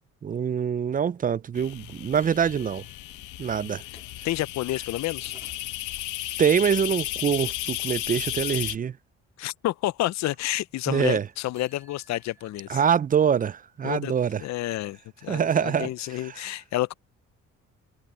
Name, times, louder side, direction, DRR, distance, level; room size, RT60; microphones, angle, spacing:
voice 1, 0.2-2.8 3.4-3.8 6.4-9.0 10.9-11.3 12.7-14.4 15.3-16.4, right 7 dB, 30° right, 0.4 m, -25 dB
sound 1, 1.6-8.8, left 15 dB, 85° left, 0.8 m, -34 dB
sound 2, 2.1-4.3 5.0-6.1 11.2-12.8 13.3-13.4 13.8-14.8, right 2 dB, 10° right, 2.7 m, -59 dB
voice 2, 4.2-5.4 9.4-12.8 13.8-14.1 14.4-16.9, left 16 dB, 65° left, 0.5 m, -30 dB
cardioid pair, 90°, 30 cm